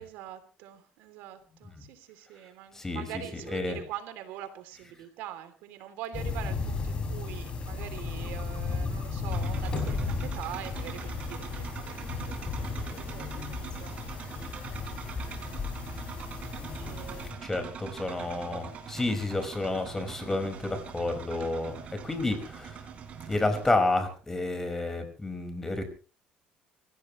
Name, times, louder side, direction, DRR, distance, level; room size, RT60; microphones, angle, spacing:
voice 1, 0.0-14.4 16.8-17.4 21.4-21.5, right 12 dB, 80° right, 10 dB, 3.2 m, -43 dB
voice 2, 2.7-3.1 3.5-3.8 17.2-22.8 23.3-25.8, left 2 dB, 15° left, 6 dB, 5.4 m, -30 dB
sound 1, 6.1-17.3, left 4 dB, 35° left, 6.6 m, -34 dB
sound 2, 9.3-23.7, right 7 dB, 45° right, 4.1 m, -43 dB
26.5 x 16.5 x 3.2 m, 0.38 s
cardioid pair, 120°, 3 cm